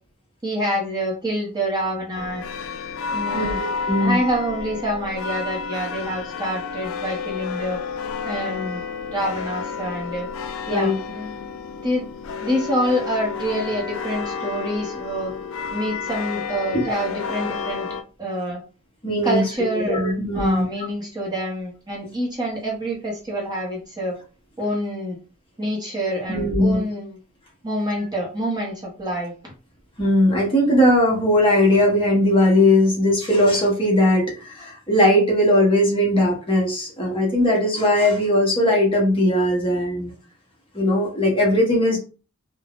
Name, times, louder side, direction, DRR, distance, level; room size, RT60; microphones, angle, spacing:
voice 1, 0.4-2.5 3.1-3.6 4.0-7.8 8.2-8.8 9.1-10.3 10.7-11.4 11.8-12.0 12.4-15.3 15.7-17.9 18.2-18.6 19.2-20.0 20.3-24.2 24.6-25.2 25.6-27.2 27.6-29.3, equal, 20° right, -2 dB, 0.6 m, -26 dB
sound 1, 2.1-18.0, left 5 dB, 65° left, 0.4 m, -31 dB
voice 2, 3.3-4.2 10.7-11.0 16.7-16.9 19.0-19.4 19.8-20.7 26.3-26.8 30.0-40.1 40.7-42.0, left 1 dB, 25° left, -2 dB, 0.9 m, -19 dB
3.3 x 2.0 x 2.4 m, 0.35 s
head